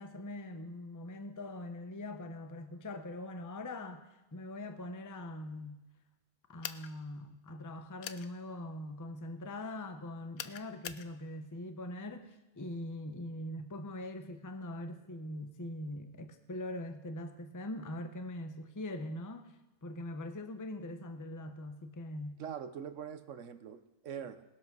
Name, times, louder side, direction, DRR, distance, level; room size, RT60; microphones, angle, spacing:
voice 1, 0.0-4.0 4.3-5.8 6.5-22.4, left 1 dB, 15° left, 8 dB, 0.7 m, -42 dB
sound 1, 6.6-6.9 8.0-8.3 10.4-11.1, left 10 dB, 75° left, 1.1 m, -42 dB
voice 2, 22.4-24.4, right 8 dB, 65° right, 11 dB, 1.1 m, -43 dB
19.5 x 7.8 x 6.1 m, 1.0 s
omnidirectional pair, 1.5 m